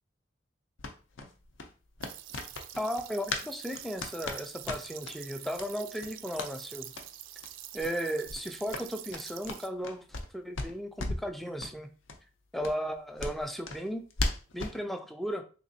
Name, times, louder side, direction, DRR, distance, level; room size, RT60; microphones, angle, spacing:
sound 1, 0.8-3.5 3.7-5.2 5.5-5.7 6.0-6.5 6.9-7.1 7.4-7.5 7.8-8.0 8.2-10.3 10.5-11.3 11.6-11.7 12.1-12.2 12.6-14.8, left 2 dB, 70° left, 0.6 m, -37 dB
sound 2, 2.0-9.7, right 13 dB, 80° right, 0.3 m, -46 dB
voice 1, 2.8-6.9 7.7-10.0 10.3-11.9 12.5-14.0 14.5-15.4, equal, ahead, 6 dB, 0.4 m, -35 dB
3.5 x 2.9 x 2.7 m, 0.36 s
head